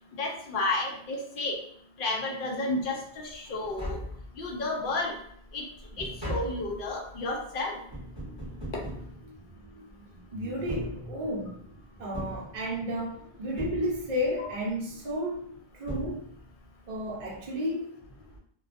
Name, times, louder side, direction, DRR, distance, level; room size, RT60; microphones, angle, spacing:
voice 1, 0.1-1.6 2.0-4.0 4.4-5.1 5.5-5.6 6.0-7.8 14.4-14.5, left 2 dB, 60° left, 1 dB, 0.7 m, -31 dB
Tap, 3.6-4.7 5.2-9.9 10.5-11.6 12.1-13.1 13.6-14.4 15.4-15.5 15.9-16.7 17.0-17.1, equal, 30° left, 0.9 m, -39 dB
voice 2, 8.2-11.6 11.9-16.3 16.9-17.9, equal, 50° right, -3 dB, 0.6 m, -34 dB
2.4 x 2.2 x 2.4 m, 0.64 s
omnidirectional pair, 1.0 m